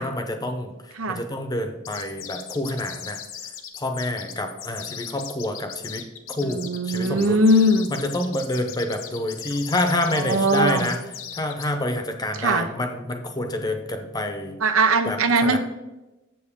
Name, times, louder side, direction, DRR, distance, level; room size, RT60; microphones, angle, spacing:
voice 1, 0.0-3.2 3.8-6.1 6.4-7.4 7.9-11.0 11.3-14.6 15.1-15.6, left 1 dB, 20° left, 6 dB, 0.7 m, -28 dB
sound 1, 1.8-11.7, left 9 dB, 75° left, 0.8 m, -38 dB
voice 2, 6.4-7.9 9.9-10.9 12.4-12.7 14.6-15.6, right 1 dB, 85° right, 9 dB, 0.7 m, -20 dB
7.6 x 7.0 x 3.6 m, 1.0 s
head